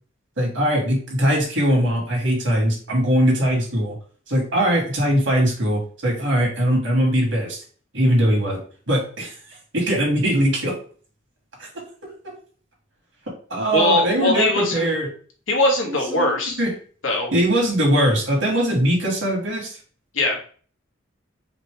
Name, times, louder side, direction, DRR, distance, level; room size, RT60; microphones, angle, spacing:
voice 1, 0.4-4.0 4.3-7.6 7.9-8.6 8.9-9.3 9.7-10.7 11.6-12.3 13.5-15.1 15.9-16.7 17.3-19.8, equal, 70° right, -2 dB, 2.3 m, -21 dB
voice 2, 13.7-14.9 15.5-16.6 17.0-17.3 20.1-20.4, left 2 dB, 80° left, 0 dB, 1.4 m, -20 dB
5.1 x 2.9 x 3.4 m, 0.42 s
head